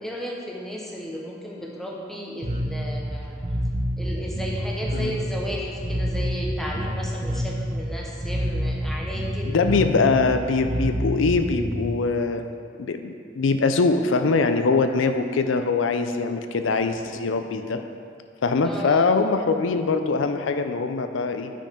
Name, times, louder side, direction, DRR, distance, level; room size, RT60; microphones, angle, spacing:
voice 1, 0.0-3.4 4.0-9.6 18.6-19.1, equal, ahead, -3 dB, 1.0 m, -34 dB
Bass guitar, 2.4-11.9, equal, 30° right, 0.9 m, -28 dB
voice 2, 9.5-12.4 12.8-17.8 18.4-21.5, left 4 dB, 80° left, 8 dB, 0.5 m, -23 dB
8.9 x 5.4 x 5.1 m, 2.3 s
head